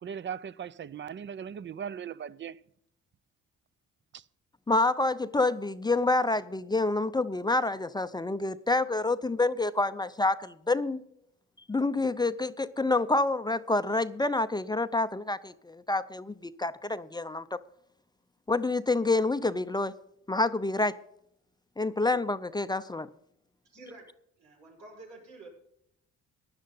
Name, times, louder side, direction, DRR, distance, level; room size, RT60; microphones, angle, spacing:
voice 1, 0.0-2.6 4.1-4.2, right 8 dB, 40° right, 0.5 m, -38 dB
voice 2, 4.7-11.0 11.7-17.6 18.5-20.0 20.3-21.0 21.8-23.1, left 2 dB, 15° left, 0.5 m, -28 dB
voice 3, 23.7-24.0 24.4-25.5, right 2 dB, 85° right, 5.9 m, -49 dB
15.5 x 10.5 x 4.0 m
cardioid pair, 90°, 30 cm